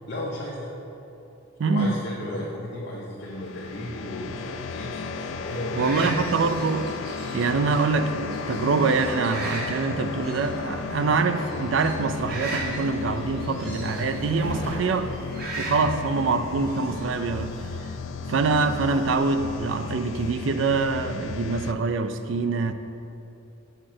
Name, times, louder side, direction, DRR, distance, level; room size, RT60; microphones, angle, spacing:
voice 1, 0.1-0.7 1.6-6.2 15.8-15.9, left 1 dB, 50° left, -5 dB, 0.8 m, -35 dB
voice 2, 1.6-2.0 5.8-6.9 7.3-15.1 15.6-17.7 18.3-22.7, right 4 dB, 65° right, 9 dB, 0.4 m, -25 dB
sound 1, 3.2-21.7, left 4 dB, 70° left, 0.4 m, -34 dB
sound 2, 5.5-17.7, right 2 dB, 50° right, 1.2 m, -39 dB
sound 3, 13.8-21.1, equal, 15° right, 1.7 m, -44 dB
6.6 x 6.1 x 4.4 m, 2.8 s
head